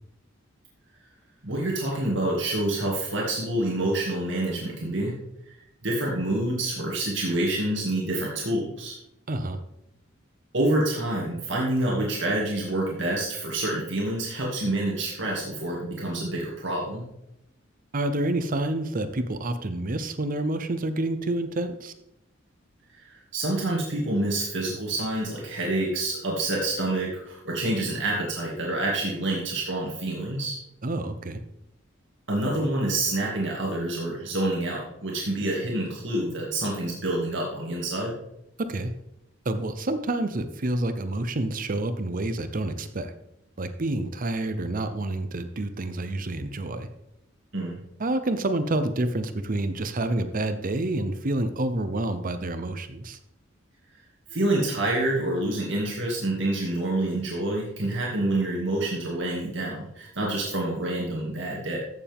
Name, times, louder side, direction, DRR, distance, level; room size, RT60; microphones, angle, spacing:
voice 1, 1.4-5.1 5.5-9.0 10.5-17.0 23.0-30.6 32.3-38.1 47.5-47.8 54.3-61.8, right 1 dB, 65° right, -3 dB, 2.4 m, -27 dB
voice 2, 9.3-9.6 17.9-21.9 30.8-31.4 38.6-38.9 39.4-43.1 43.6-46.9 48.0-53.2, right 2 dB, 45° right, 10 dB, 0.7 m, -28 dB
14.5 x 7.1 x 3.6 m, 0.81 s
head